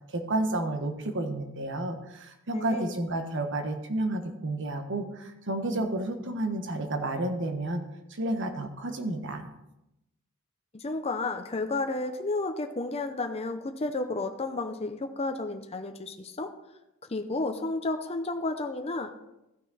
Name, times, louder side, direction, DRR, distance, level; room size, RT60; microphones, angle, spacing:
voice 1, 0.1-7.8 8.1-9.5, right 2 dB, 60° right, 6 dB, 1.3 m, -31 dB
voice 2, 2.5-2.9 10.7-16.5 17.1-19.2, left 2 dB, 30° left, 5 dB, 0.7 m, -32 dB
14.5 x 6.0 x 4.1 m, 0.89 s
head